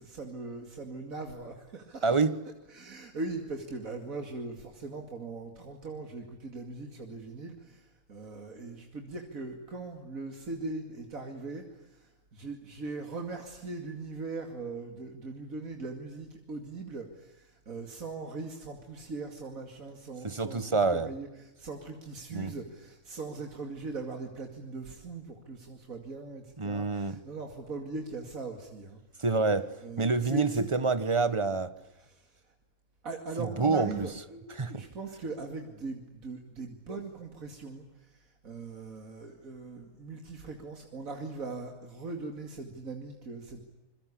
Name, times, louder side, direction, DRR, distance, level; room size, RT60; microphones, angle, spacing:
voice 1, 0.0-2.2 2.7-29.0 29.8-30.7 32.0-32.4 33.0-43.6, right 3 dB, 85° right, 2.9 m, -40 dB
voice 2, 2.0-2.4 20.2-21.1 22.3-22.5 26.6-27.2 29.2-31.7 33.4-34.1 34.6-34.8, right 4 dB, 25° right, 1.3 m, -27 dB
27.5 x 22.5 x 8.6 m
omnidirectional pair, 1.4 m